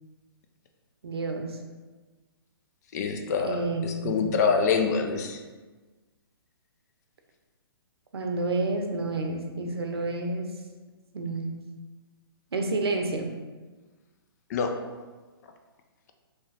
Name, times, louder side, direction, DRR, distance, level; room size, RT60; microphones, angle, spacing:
voice 1, 1.0-1.6 3.4-4.5 8.1-10.5 11.1-11.6 12.5-13.3, right 2 dB, 80° right, 3 dB, 0.7 m, -30 dB
voice 2, 2.9-5.4 14.5-14.7, left 5 dB, 40° left, 5 dB, 0.4 m, -26 dB
3.4 x 2.9 x 3.3 m, 1.3 s
hypercardioid pair, 145°, 13 cm